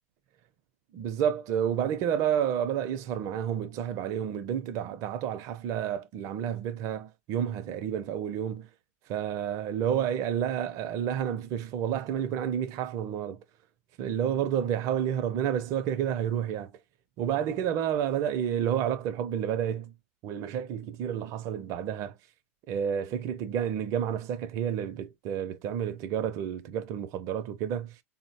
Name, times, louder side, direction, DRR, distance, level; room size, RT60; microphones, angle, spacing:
voice 1, 0.9-8.7 9.1-13.4 14.0-16.7 17.2-19.9 20.2-22.1 22.7-27.9, right 9 dB, 50° right, 0.5 m, -30 dB
3.7 x 2.1 x 2.6 m
hypercardioid pair, 115°, 7 cm